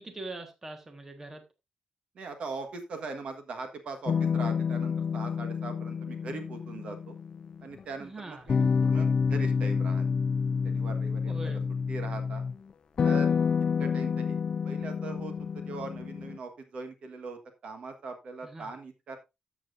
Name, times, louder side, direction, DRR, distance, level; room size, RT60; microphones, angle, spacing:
voice 1, 0.0-1.4 8.0-8.4 11.2-11.7 18.4-18.7, right 2 dB, 20° right, 1.5 m, -42 dB
voice 2, 2.1-7.1 7.6-10.0 10.6-11.6 11.9-12.4 13.0-13.4 13.8-14.4 14.6-19.2, right 4 dB, 55° right, 1.4 m, -41 dB
sound 1, 4.1-7.8 8.5-12.5 13.0-16.4, left 6 dB, 40° left, 0.5 m, -28 dB
13.0 x 7.3 x 2.6 m
wide cardioid pair, 175°, 2 cm